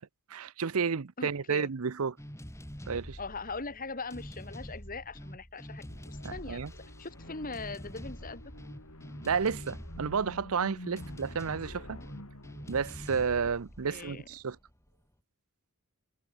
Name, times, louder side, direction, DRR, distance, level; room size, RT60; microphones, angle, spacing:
voice 1, 0.3-2.2 2.9-3.2 6.2-6.7 9.3-12.0 12.7-14.6, right 5 dB, 75° right, 0.7 m, -31 dB
voice 2, 1.2-1.7 3.2-6.6 7.0-8.4 11.8-12.1 13.8-14.3, left 3 dB, 40° left, 2.1 m, -41 dB
sound 1, 2.2-14.9, equal, 15° left, 4.1 m, -46 dB
sound 2, 5.6-13.3, left 1 dB, 75° left, 6.0 m, -50 dB
head